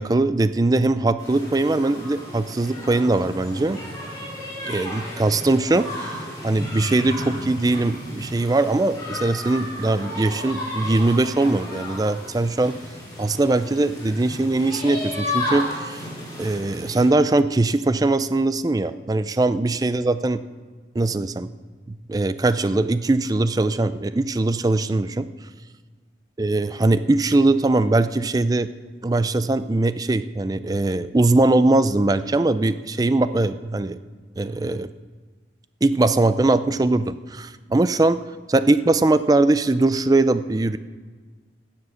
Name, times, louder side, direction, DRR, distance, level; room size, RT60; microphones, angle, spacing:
voice 1, 0.0-3.8 4.6-6.2 6.4-12.8 13.2-16.0 16.4-20.4 21.0-21.5 21.9-25.3 26.4-28.7 29.0-34.0 34.4-34.9 35.8-38.2 38.5-40.8, right 2 dB, 20° right, 13 dB, 0.4 m, -21 dB
sound 1, 1.2-17.1, left 1 dB, 20° left, 4.4 m, -33 dB
16.0 x 7.3 x 6.4 m, 1.4 s
head